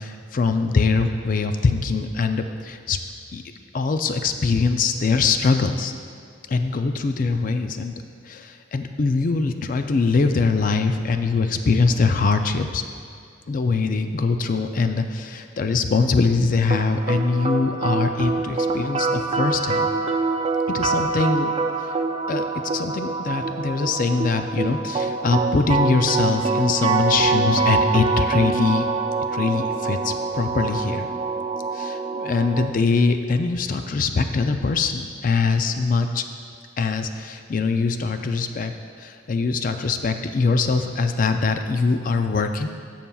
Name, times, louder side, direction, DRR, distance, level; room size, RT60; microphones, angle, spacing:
voice 1, 0.0-3.0 3.3-3.4 3.7-5.9 6.5-12.8 13.5-19.9 20.7-21.5 21.8-21.9 22.3-22.5 22.7-28.9 29.3-31.1 31.7-36.2 36.8-38.7 39.0-42.7, left 4 dB, 45° left, 7 dB, 0.4 m, -22 dB
sound 1, 16.7-32.7, right 4 dB, 30° right, 0.4 m, -25 dB
14.5 x 5.5 x 2.3 m, 2.3 s
head